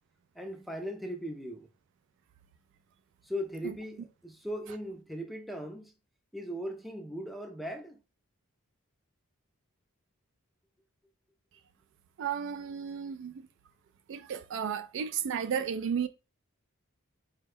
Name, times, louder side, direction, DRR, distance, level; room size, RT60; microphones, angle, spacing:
voice 1, 0.4-1.7 3.2-5.9 6.3-8.0, equal, ahead, 0.5 m, -38 dB
voice 2, 12.2-13.5 14.1-16.1, right 7 dB, 60° right, 0.3 m, -33 dB
4.1 x 2.2 x 3.4 m
head